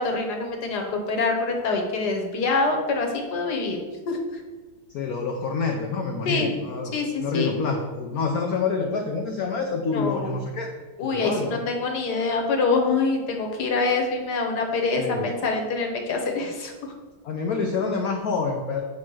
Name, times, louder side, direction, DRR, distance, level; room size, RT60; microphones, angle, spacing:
voice 1, 0.0-3.8 4.1-4.2 6.2-6.5 6.9-7.5 9.9-10.4 11.0-16.9, left 3 dB, 55° left, 2 dB, 1.5 m, -25 dB
voice 2, 4.9-6.9 7.2-10.7 11.0-11.6 15.0-15.3 17.2-18.8, left 4 dB, 80° left, 3 dB, 0.8 m, -27 dB
8.5 x 3.2 x 6.2 m, 1.3 s
omnidirectional pair, 2.4 m